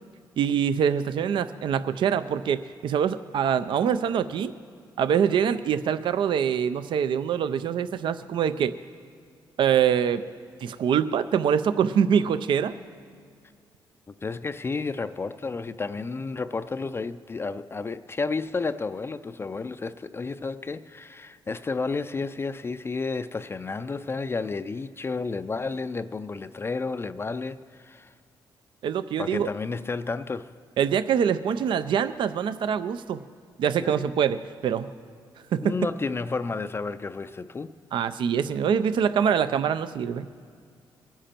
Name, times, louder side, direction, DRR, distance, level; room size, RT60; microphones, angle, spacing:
voice 1, 0.4-4.5 5.0-8.7 9.6-10.2 10.6-12.7 28.8-29.5 30.8-33.2 33.6-34.9 35.5-35.7 37.9-40.3, right 8 dB, 70° right, 13 dB, 0.4 m, -24 dB
voice 2, 14.2-28.1 29.2-30.5 33.8-34.0 35.6-37.7, left 4 dB, 30° left, 10 dB, 0.4 m, -31 dB
23.0 x 10.0 x 4.4 m, 2.2 s
cardioid pair, 85°, 9 cm